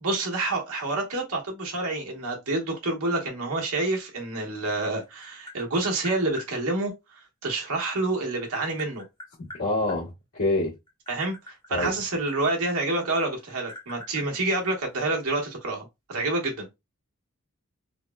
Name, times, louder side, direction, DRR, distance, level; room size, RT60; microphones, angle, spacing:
voice 1, 0.0-9.0 11.1-16.7, right 2 dB, 85° right, 1.1 m, -28 dB
Tap, 4.6-6.5 7.8-10.0 10.7-12.9 13.2-15.2, left 2 dB, 20° left, 0.8 m, -45 dB
voice 2, 9.4-10.7 11.7-11.9, left 2 dB, 85° left, 1.4 m, -26 dB
3.4 x 2.1 x 2.2 m
head